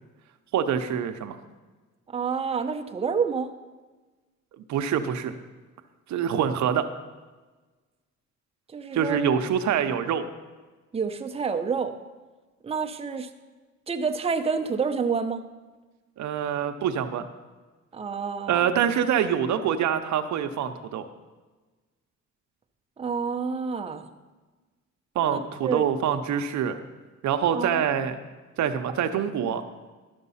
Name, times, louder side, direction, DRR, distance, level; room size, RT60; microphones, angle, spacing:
voice 1, 0.5-1.4 4.7-5.3 6.1-6.8 8.9-10.3 16.2-17.2 18.5-21.1 25.2-26.8 27.2-28.2 28.6-29.6, right 8 dB, 70° right, 8 dB, 0.7 m, -25 dB
voice 2, 2.1-3.5 8.7-9.4 10.9-11.9 12.6-13.3 13.9-15.4 17.9-18.7 23.0-24.1 25.3-25.8 27.5-27.9, right 5 dB, 20° right, 6 dB, 0.6 m, -28 dB
12.5 x 5.3 x 5.6 m, 1.3 s
cardioid pair, 90°, 30 cm